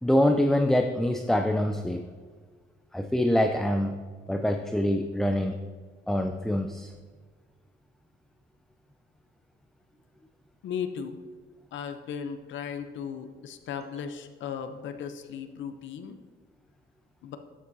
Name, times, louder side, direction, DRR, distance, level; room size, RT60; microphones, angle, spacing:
voice 1, 0.0-2.0 2.9-4.0 4.3-5.6 6.1-6.9, left 1 dB, ahead, 6 dB, 0.4 m, -25 dB
voice 2, 10.6-11.2 11.7-16.2 17.2-17.4, left 7 dB, 70° left, 8 dB, 0.7 m, -36 dB
11.0 x 7.4 x 2.7 m, 1.5 s
cardioid pair, 90°, 20 cm